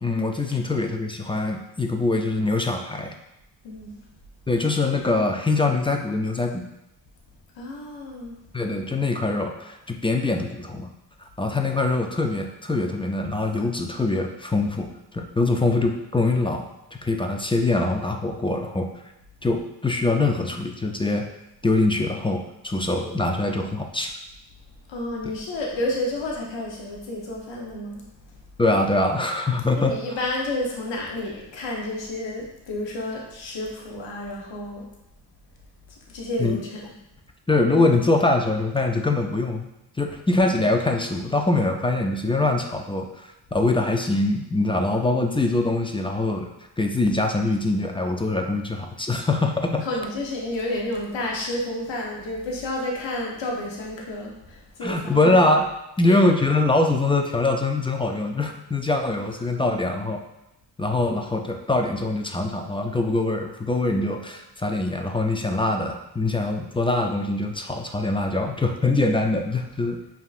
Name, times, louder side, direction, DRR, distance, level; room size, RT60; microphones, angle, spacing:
voice 1, 0.0-3.1 4.5-6.7 8.5-10.9 11.4-16.7 17.0-18.9 19.4-21.3 21.6-24.1 28.6-30.0 36.4-36.6 37.5-39.7 40.0-46.5 46.8-49.9 54.8-55.7 56.0-60.2 60.8-70.0, left 2 dB, 15° left, 3 dB, 0.3 m, -23 dB
voice 2, 3.6-4.0 7.5-8.3 24.9-28.3 29.7-34.9 35.9-36.9 49.8-55.4 56.1-56.2, left 1 dB, 85° left, -2 dB, 0.8 m, -30 dB
5.2 x 2.8 x 2.4 m, 0.92 s
cardioid pair, 75°, 43 cm